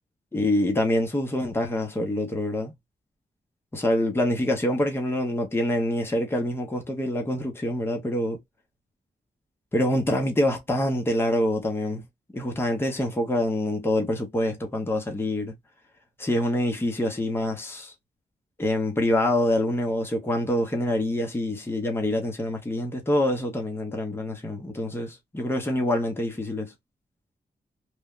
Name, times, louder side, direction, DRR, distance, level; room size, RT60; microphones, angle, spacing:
voice 1, 0.3-2.7 3.7-8.4 9.7-12.0 12.3-15.5 16.2-17.9 18.6-26.7, left 1 dB, 15° left, 0.7 m, -26 dB
3.1 x 2.2 x 2.3 m
wide cardioid pair, 170°, 17 cm